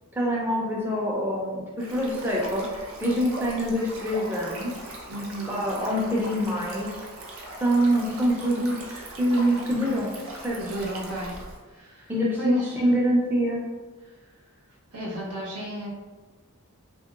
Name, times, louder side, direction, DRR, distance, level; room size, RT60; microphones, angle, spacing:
voice 1, 0.1-4.7 5.5-7.0 7.6-10.6 12.1-13.6, equal, 10° right, -4 dB, 0.4 m, -25 dB
Stream, 1.8-11.6, right 1 dB, 65° right, 0.5 m, -40 dB
voice 2, 5.1-5.6 10.6-11.4 11.7-12.1 12.4-12.8 14.0-14.3 14.9-15.9, right 1 dB, 85° right, -5 dB, 1.0 m, -34 dB
2.9 x 2.7 x 2.4 m, 1.3 s
head